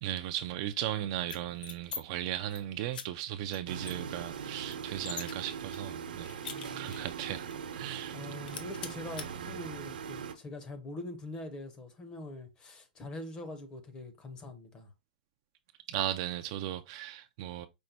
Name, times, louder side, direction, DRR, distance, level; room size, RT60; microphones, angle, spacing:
voice 1, 0.0-6.3 6.8-8.2 15.9-17.7, right 12 dB, 35° right, 0.3 m, -36 dB
sound 1, 1.2-2.0 2.3-2.6 2.9-3.1 3.5-3.6 3.9-5.3 5.7-7.1 7.5-7.6 7.9-8.2 8.5-9.3, left 6 dB, 70° left, 0.9 m, -43 dB
sound 2, 3.7-10.3, right 7 dB, 70° right, 0.9 m, -41 dB
voice 2, 6.5-7.0 7.8-14.9, left 2 dB, 15° left, 0.7 m, -44 dB
5.2 x 2.1 x 4.2 m
hypercardioid pair, 155°, 5 cm